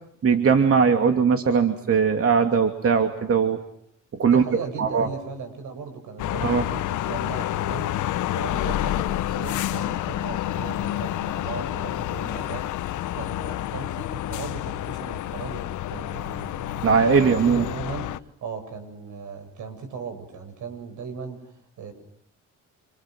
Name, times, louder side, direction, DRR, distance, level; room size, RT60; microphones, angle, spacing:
voice 1, 0.2-3.6 4.2-4.4 4.8-5.1 6.4-6.6 16.8-17.6, right 6 dB, 50° right, 5 dB, 2.7 m, -20 dB
voice 2, 4.2-12.7 13.1-15.6 15.9-21.9, right 5 dB, 80° right, 8 dB, 7.8 m, -37 dB
sound 1, 6.2-18.2, left 14 dB, 80° left, 1.1 m, -29 dB
29.0 x 28.5 x 6.3 m, 0.73 s
cardioid pair, 90°, 30 cm